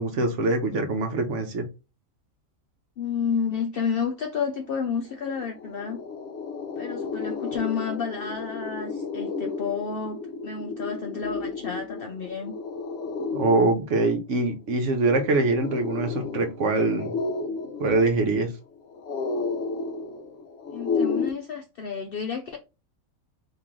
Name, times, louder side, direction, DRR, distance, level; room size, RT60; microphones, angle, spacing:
voice 1, 0.0-1.6 13.3-17.1 17.8-18.5, right 2 dB, 60° right, 1.0 m, -23 dB
voice 2, 3.0-6.0 6.8-12.5 20.7-22.6, left 6 dB, 85° left, 0.5 m, -30 dB
sound 1, 5.1-21.3, left 4 dB, 60° left, 0.9 m, -32 dB
3.0 x 2.9 x 3.6 m
omnidirectional pair, 1.5 m